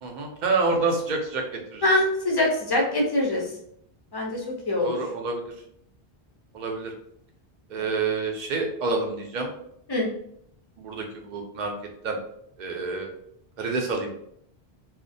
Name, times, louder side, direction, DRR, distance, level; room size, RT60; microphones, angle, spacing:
voice 1, 0.0-1.8 4.8-5.4 6.5-6.9 7.7-9.5 10.8-11.7 12.0-12.2 12.6-13.1 13.6-14.1, right 3 dB, 55° right, 2 dB, 0.6 m, -28 dB
voice 2, 1.8-3.5 4.1-4.4 4.6-5.0 9.9-10.1, left 1 dB, 35° left, -1 dB, 0.4 m, -23 dB
2.3 x 2.1 x 2.6 m, 0.71 s
omnidirectional pair, 1.0 m